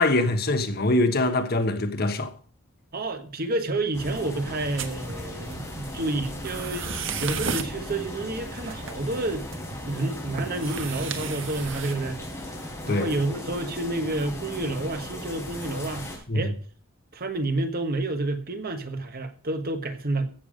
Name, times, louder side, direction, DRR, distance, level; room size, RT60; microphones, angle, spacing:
voice 1, 0.0-2.3 12.9-13.1 16.3-16.5, left 2 dB, 55° left, 1.3 m, -23 dB
voice 2, 2.9-9.5 9.9-12.3 12.9-16.6 17.1-20.3, right 2 dB, 50° right, 1.4 m, -29 dB
sound 1, 3.9-16.2, left 1 dB, 15° left, 4.0 m, -37 dB
sound 2, 4.8-13.0, right 6 dB, 70° right, 1.4 m, -37 dB
15.5 x 7.1 x 5.1 m
head